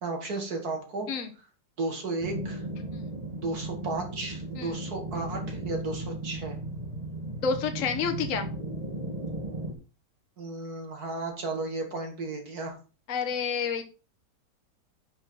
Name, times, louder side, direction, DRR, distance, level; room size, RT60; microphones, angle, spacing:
voice 1, 0.0-1.1 1.8-2.6 3.4-6.6 10.4-12.8, right 3 dB, 55° right, 3 dB, 2.7 m, -34 dB
sound 1, 2.2-9.7, right 1 dB, 25° right, 1.5 m, -36 dB
voice 2, 7.4-8.5 13.1-13.8, left 6 dB, 50° left, 6 dB, 1.3 m, -29 dB
11.0 x 6.0 x 4.0 m, 0.34 s
omnidirectional pair, 1.9 m